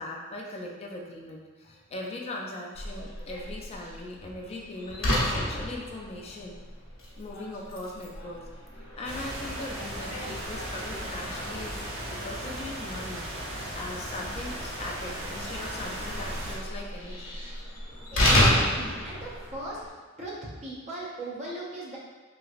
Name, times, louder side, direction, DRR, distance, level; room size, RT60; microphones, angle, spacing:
voice 1, 0.0-6.6 7.2-8.5 9.0-17.4, left 2 dB, 30° left, -1 dB, 0.4 m, -39 dB
Slam, 2.7-19.9, left 1 dB, 75° left, 0.8 m, -32 dB
sound 1, 9.0-16.6, right 1 dB, 85° right, 0.9 m, -37 dB
voice 2, 18.1-19.9 20.2-22.0, right 1 dB, 35° right, -5 dB, 0.6 m, -38 dB
3.2 x 2.9 x 2.4 m, 1.3 s
head